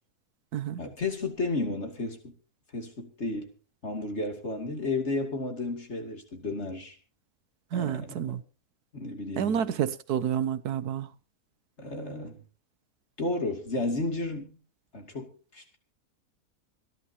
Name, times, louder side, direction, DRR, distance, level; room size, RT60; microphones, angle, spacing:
voice 1, 0.8-2.2 2.7-3.5 3.8-7.0 7.7-8.4 8.9-9.6 11.8-12.4 13.2-14.6 14.9-15.8, left 2 dB, 45° left, 3.0 m, -33 dB
voice 2, 7.7-8.4 9.4-11.1, right 9 dB, 90° right, 1.5 m, -29 dB
27.0 x 11.0 x 2.9 m
omnidirectional pair, 1.6 m